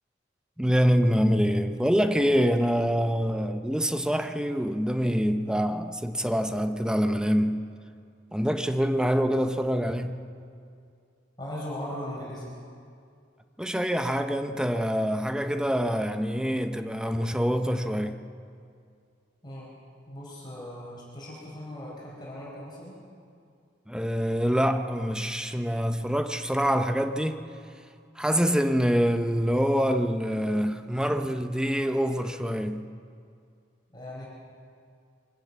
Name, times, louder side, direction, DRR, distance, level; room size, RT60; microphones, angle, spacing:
voice 1, 0.6-7.6 8.3-10.2 13.6-18.2 23.9-27.4 28.2-32.9, equal, 5° right, 0.7 m, -25 dB
voice 2, 11.4-12.5 19.4-19.7 20.1-22.9 33.9-34.3, left 1 dB, 25° left, 4.7 m, -38 dB
23.5 x 13.0 x 8.3 m
head